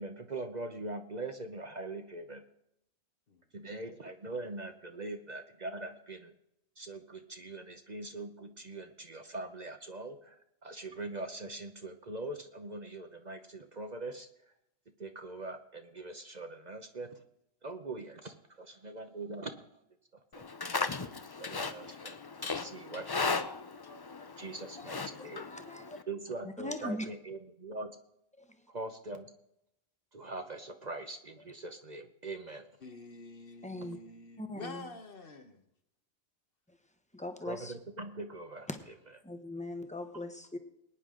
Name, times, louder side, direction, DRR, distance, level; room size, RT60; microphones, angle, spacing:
voice 1, 0.0-2.4 3.5-6.3 6.8-10.4 10.6-14.3 15.0-17.2 17.6-19.7 20.3-20.4 21.0-21.1 21.4-23.4 24.4-25.4 26.1-28.0 28.7-29.3 30.1-32.7 37.4-38.7, right 2 dB, 40° right, 1.0 m, -42 dB
voice 2, 3.3-3.9 10.9-11.1 32.8-35.6, left 3 dB, 55° left, 1.3 m, -48 dB
Livestock farm animals working animals, 20.3-26.0, left 4 dB, 30° left, 0.4 m, -37 dB
voice 3, 25.2-26.0 26.6-27.1 28.4-28.5 33.6-34.0 34.4-34.8 37.1-37.7 38.7-38.8 39.2-40.6, left 1 dB, 5° left, 1.1 m, -40 dB
20.5 x 10.0 x 3.8 m
omnidirectional pair, 1.2 m